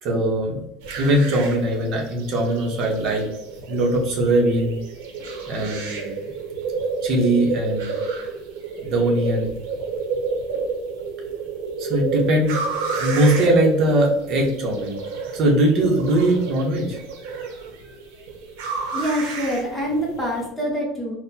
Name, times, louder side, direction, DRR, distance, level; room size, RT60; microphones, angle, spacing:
voice 1, 0.0-0.7 1.0-3.2 3.7-4.8 5.5-6.1 7.0-8.0 8.8-9.5 11.8-12.6 12.9-15.0 15.3-17.0, right 1 dB, 40° right, 0 dB, 0.8 m, -20 dB
sound 1, 0.8-20.4, right 4 dB, 80° right, 0.7 m, -30 dB
voice 2, 18.9-21.1, equal, 10° left, -2 dB, 0.6 m, -25 dB
4.0 x 2.1 x 2.7 m, 0.80 s
cardioid pair, 170°, 0 cm